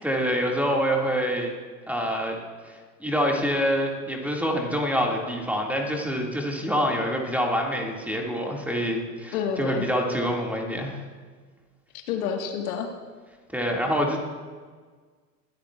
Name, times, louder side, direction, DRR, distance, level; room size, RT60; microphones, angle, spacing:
voice 1, 0.0-1.5 1.9-2.4 2.7-11.0 13.5-14.2, equal, 5° right, 0 dB, 2.1 m, -26 dB
voice 2, 9.3-9.9 12.1-12.9, left 7 dB, 60° left, 4 dB, 1.7 m, -28 dB
21.5 x 13.0 x 2.4 m, 1.5 s
hypercardioid pair, 90°, 48 cm